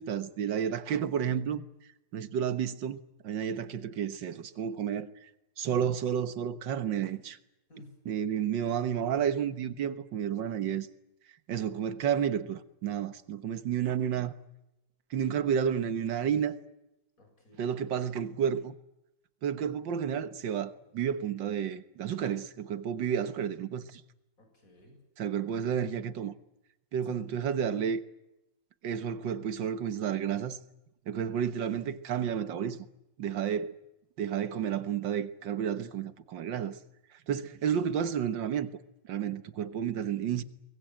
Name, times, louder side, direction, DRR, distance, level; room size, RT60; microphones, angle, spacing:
voice 1, 0.0-1.6 2.1-5.3 5.6-7.4 8.1-10.9 11.5-14.3 15.1-16.6 17.6-18.7 19.4-24.0 25.2-26.3 26.9-28.0 28.8-30.6 31.1-32.8 33.2-33.7 34.2-36.8 37.3-38.7 39.1-40.4, right 8 dB, 80° right, 1.9 m, -31 dB
voice 2, 17.2-17.7 24.4-25.0 27.1-27.2 39.8-40.3, left 1 dB, 45° left, 7.7 m, -55 dB
24.0 x 21.5 x 9.1 m
omnidirectional pair, 2.0 m